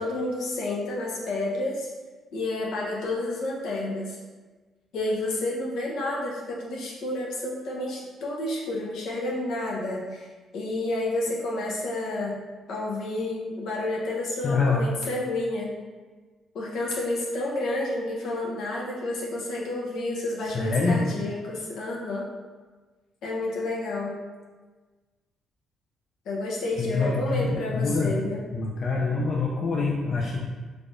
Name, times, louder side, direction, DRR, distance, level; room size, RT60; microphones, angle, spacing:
voice 1, 0.0-1.9 2.3-4.2 4.9-10.3 10.5-12.4 12.7-15.7 16.5-22.3 23.2-24.1 26.2-28.4, left 2 dB, 80° left, -3 dB, 0.8 m, -30 dB
voice 2, 14.4-14.9 20.4-21.0 26.8-27.5 27.7-28.1 28.5-30.5, left 4 dB, 50° left, -3 dB, 0.4 m, -25 dB
3.3 x 3.3 x 2.6 m, 1.3 s
cardioid pair, 90°, 0 cm